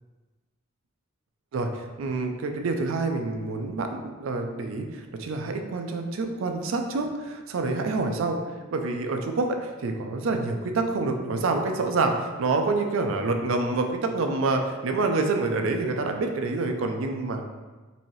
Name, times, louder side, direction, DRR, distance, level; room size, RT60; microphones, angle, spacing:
voice 1, 1.5-8.4 8.7-17.5, right 3 dB, 75° right, 4 dB, 0.4 m, -27 dB
4.1 x 2.7 x 3.1 m, 1.3 s
head